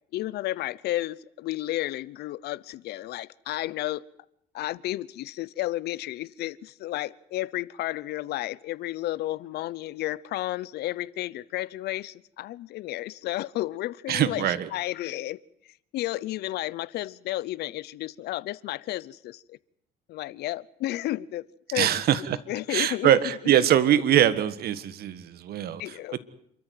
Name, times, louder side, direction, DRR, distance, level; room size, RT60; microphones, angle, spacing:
voice 1, 0.1-4.0 4.5-15.4 15.9-19.6 20.1-21.5 21.7-22.0 22.5-23.1 25.8-26.2, left 16 dB, 75° left, 0.8 m, -32 dB
voice 2, 14.1-14.7 21.7-22.4 22.7-26.2, right 11 dB, 65° right, 1.6 m, -23 dB
28.0 x 14.0 x 9.4 m
cardioid pair, 110°, 17 cm